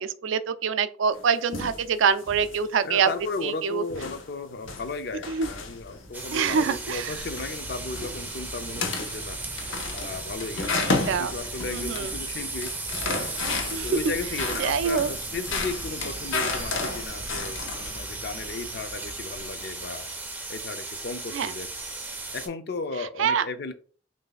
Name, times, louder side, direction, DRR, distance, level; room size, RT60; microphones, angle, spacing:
voice 1, 0.0-3.1 3.4-3.8 5.3-5.5 6.3-7.1 10.8-11.3 11.7-12.1 13.7-14.0 14.6-15.1 21.3-21.5 23.0-23.5, right 6 dB, 75° right, 13 dB, 0.3 m, -25 dB
sound 1, 1.1-1.9 2.2-2.6 3.1-3.5 3.9-6.1 6.4-6.8 7.2-7.6 7.9-8.3 8.7-9.2 9.6-12.1 12.4-14.0 14.4-18.0, left 3 dB, 85° left, 0.7 m, -32 dB
voice 2, 2.8-9.4 9.9-10.7 11.0-12.7 13.6-20.1 20.5-21.7 22.3-23.7, left 3 dB, 55° left, 10 dB, 0.4 m, -35 dB
Cricket, 4.5-20.2, equal, 70° left, 1.1 m, -43 dB
sound 2, 6.1-22.5, right 3 dB, 10° right, 0.4 m, -36 dB
3.2 x 2.6 x 3.9 m, 0.42 s
head